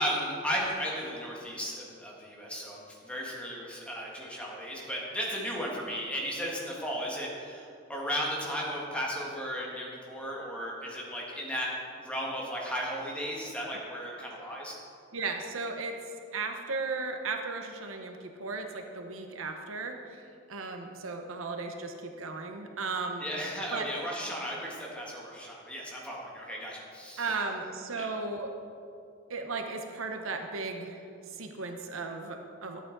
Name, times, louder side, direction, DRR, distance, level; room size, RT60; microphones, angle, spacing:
voice 1, 0.0-11.7 12.0-14.7 23.2-27.3 27.9-28.1, equal, 5° left, -4 dB, 1.6 m, -35 dB
voice 2, 15.1-15.9 16.3-20.2 20.5-23.2 23.7-23.9 27.2-28.5 29.3-31.0 31.3-32.8, right 3 dB, 90° right, 5 dB, 0.9 m, -35 dB
12.0 x 8.6 x 4.0 m, 2.5 s
head